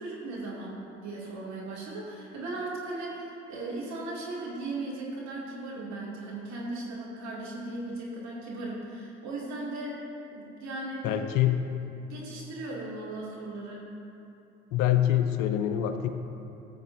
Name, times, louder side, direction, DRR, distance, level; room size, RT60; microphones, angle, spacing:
voice 1, 0.0-10.0 10.3-11.1 11.7-13.8, right 2 dB, 55° right, -5 dB, 2.3 m, -37 dB
voice 2, 11.0-11.7 14.7-16.1, left 11 dB, 60° left, 8 dB, 0.8 m, -25 dB
16.0 x 7.8 x 2.6 m, 2.8 s
hypercardioid pair, 60°, 34 cm